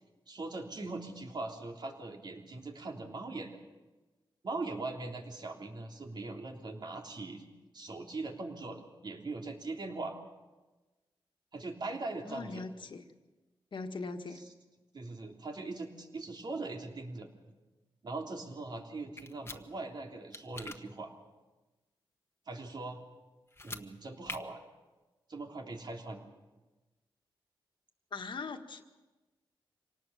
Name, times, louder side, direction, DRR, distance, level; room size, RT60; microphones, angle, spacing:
voice 1, 0.3-3.6 4.4-7.4 7.7-10.1 11.5-12.6 14.3-14.4 14.9-17.3 18.0-21.1 22.5-23.0 23.6-24.6 25.3-26.2, right 3 dB, 55° right, 2 dB, 3.3 m, -41 dB
voice 2, 12.2-13.0 13.7-14.4 28.1-28.8, left 4 dB, 60° left, 5 dB, 1.8 m, -40 dB
sound 1, 19.2-19.6 20.3-20.8 23.5-23.8 24.2-24.4, left 2 dB, 25° left, 1.5 m, -42 dB
26.0 x 18.5 x 7.1 m, 1.2 s
cardioid pair, 75°, 9 cm